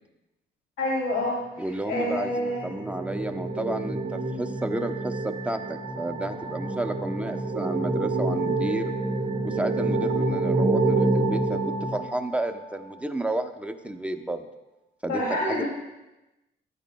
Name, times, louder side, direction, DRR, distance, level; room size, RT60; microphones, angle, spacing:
voice 1, 0.8-1.4 1.8-2.6 15.1-15.6, left 1 dB, 85° left, -5 dB, 3.1 m, -27 dB
voice 2, 1.6-8.9 9.4-14.5 15.0-15.6, right 1 dB, 5° right, 5 dB, 0.8 m, -32 dB
sound 1, 2.0-12.7, right 2 dB, 30° right, 1.7 m, -28 dB
14.5 x 10.0 x 2.3 m, 1.0 s
cardioid pair, 90°, 20 cm